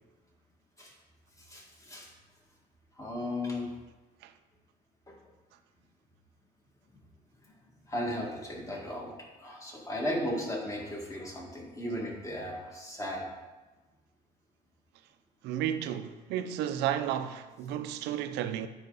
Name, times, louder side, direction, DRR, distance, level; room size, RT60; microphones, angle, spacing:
voice 1, 1.4-2.1 3.0-3.7 5.1-5.2 7.9-9.1 9.4-13.3, left 1 dB, 20° left, 1.9 m, -36 dB
voice 2, 15.4-18.7, right 10 dB, 90° right, 0.6 m, -32 dB
9.2 x 5.1 x 4.0 m
cardioid pair, 110°, 17 cm